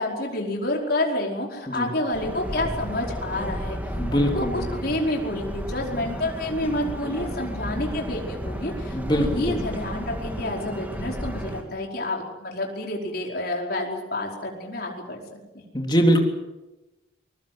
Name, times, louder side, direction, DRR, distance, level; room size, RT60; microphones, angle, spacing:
voice 1, 0.0-15.2 15.5-15.6, left 1 dB, 55° left, 0 dB, 5.0 m, -29 dB
sound 1, 2.1-11.6, equal, 10° right, 2.8 m, -33 dB
voice 2, 4.0-4.7 8.9-9.6 15.7-16.2, equal, 25° left, 2 dB, 3.5 m, -22 dB
23.0 x 22.5 x 7.7 m, 1.0 s
head